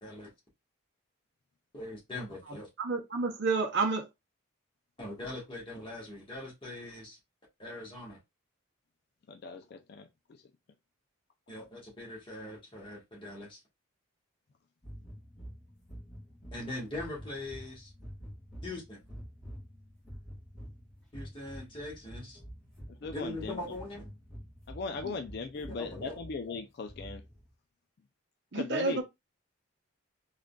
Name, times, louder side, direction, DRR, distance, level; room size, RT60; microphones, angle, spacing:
voice 1, 0.0-0.3 1.7-2.7 5.0-7.2 7.6-8.2 11.5-13.6 16.5-17.9 18.6-19.0 21.1-22.4 23.1-24.1 25.7-26.2, left 1 dB, 25° left, 1.3 m, -41 dB
voice 2, 2.8-4.1 25.0-25.1 28.5-29.0, right 4 dB, 55° right, 0.6 m, -29 dB
voice 3, 9.3-10.4 22.9-23.6 24.7-27.2 28.5-29.0, left 4 dB, 50° left, 0.3 m, -39 dB
sound 1, 14.8-27.5, equal, ahead, 1.7 m, -48 dB
3.6 x 2.4 x 2.2 m
head